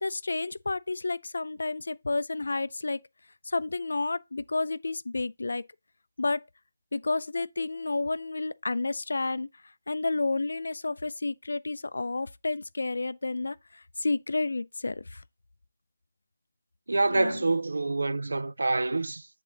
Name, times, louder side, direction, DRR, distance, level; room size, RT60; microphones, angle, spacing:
voice 1, 0.0-3.1 3.5-5.6 6.2-6.4 6.9-9.5 9.9-15.2 17.1-17.4, left 3 dB, 85° left, 0.4 m, -31 dB
voice 2, 16.9-19.3, right 2 dB, 85° right, 0.3 m, -26 dB
7.6 x 3.7 x 3.9 m
hypercardioid pair, 165°, 0 cm